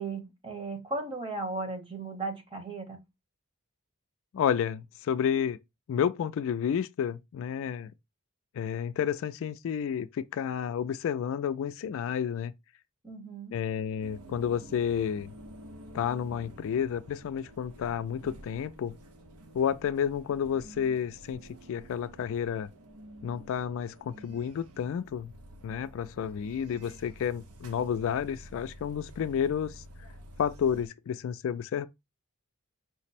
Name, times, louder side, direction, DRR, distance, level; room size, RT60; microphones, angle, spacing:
voice 1, 0.0-3.0 13.0-13.6, right 3 dB, 25° right, 1.0 m, -36 dB
voice 2, 4.3-5.6 5.9-7.9 8.6-12.5 13.5-15.3 15.9-19.0 19.5-21.4 21.7-22.7 23.2-25.3 25.6-29.7 30.4-31.9, left 8 dB, 60° left, 0.3 m, -30 dB
sound 1, 14.0-30.9, right 1 dB, 85° right, 0.7 m, -50 dB
5.1 x 2.1 x 4.1 m
head